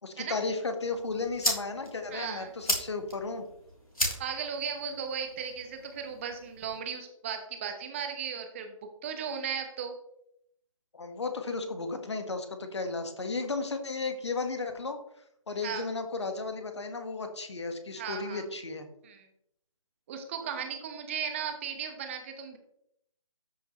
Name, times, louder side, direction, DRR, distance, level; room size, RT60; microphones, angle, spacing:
voice 1, 0.0-3.4 10.9-15.0 15.5-18.9, left 3 dB, 55° left, 6 dB, 1.6 m, -34 dB
sound 1, 0.8-6.8, equal, 85° left, 3.3 m, -36 dB
voice 2, 2.1-2.5 4.2-8.7 9.0-9.9 15.6-15.9 18.0-18.4 19.0-19.3 20.1-22.6, right 7 dB, 20° right, 6 dB, 1.2 m, -36 dB
13.0 x 5.8 x 3.1 m, 0.76 s
figure-of-eight pair, 145°, 18 cm